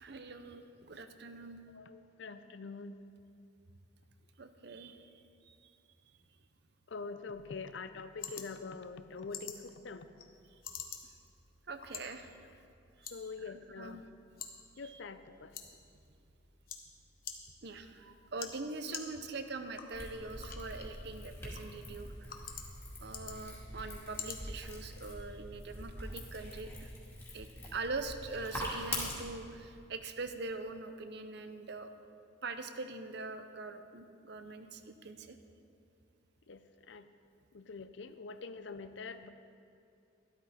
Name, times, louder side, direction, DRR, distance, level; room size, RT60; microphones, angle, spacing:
voice 1, 0.0-1.6 4.4-5.7 11.7-12.3 13.0-13.1 13.4-14.0 14.8-15.0 17.6-22.3 23.0-26.9 27.3-31.9 32.4-35.4, right 3 dB, 55° right, 8 dB, 0.7 m, -43 dB
voice 2, 1.7-2.9 6.9-10.1 13.1-14.0 14.8-15.5 36.5-36.6 36.9-37.0 37.5-39.3, left 4 dB, 65° left, 11 dB, 0.6 m, -45 dB
sound 1, 7.3-25.3, left 7 dB, 45° left, 1.0 m, -50 dB
sound 2, 19.9-29.1, left 1 dB, 15° left, 2.3 m, -44 dB
12.5 x 12.5 x 4.2 m, 2.5 s
head